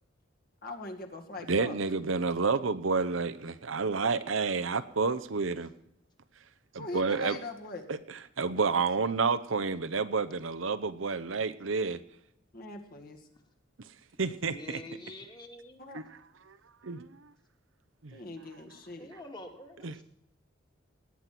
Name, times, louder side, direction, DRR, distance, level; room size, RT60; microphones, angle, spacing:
voice 1, 0.6-1.8 6.8-7.9 12.5-13.2 15.8-16.0 18.1-19.1, left 2 dB, 50° left, 3 dB, 2.1 m, -41 dB
voice 2, 1.5-5.7 6.7-7.4 7.9-12.0 13.8-13.9 14.2-14.8 15.9-16.2 16.5-16.6 16.8-17.3 18.0-18.2 19.8-19.9, right 4 dB, 85° right, 11 dB, 0.9 m, -30 dB
voice 3, 14.1-16.0 19.0-20.0, left 1 dB, 25° left, 3 dB, 2.1 m, -46 dB
19.0 x 9.5 x 6.0 m, 0.79 s
head